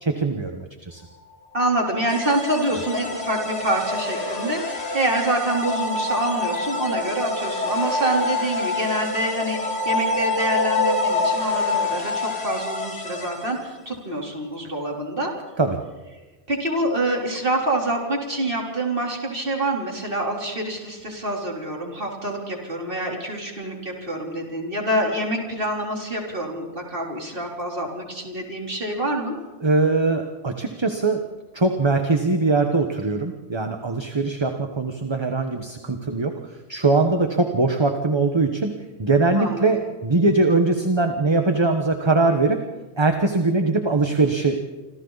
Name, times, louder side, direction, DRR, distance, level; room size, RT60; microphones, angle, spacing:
voice 1, 0.0-1.0 15.6-15.8 29.6-31.2 31.5-36.3 36.7-38.7 39.0-42.6 43.0-44.6, right 3 dB, 25° right, 5 dB, 1.3 m, -21 dB
sound 1, 1.4-13.1, left 2 dB, 80° right, 7.1 m, -27 dB
voice 2, 1.5-15.3 16.5-29.4 39.4-39.7, right 1 dB, 50° right, 0 dB, 4.1 m, -26 dB
sound 2, 2.1-13.8, left 2 dB, 35° left, 2.6 m, -32 dB
27.5 x 26.5 x 4.1 m, 1.2 s
omnidirectional pair, 1.2 m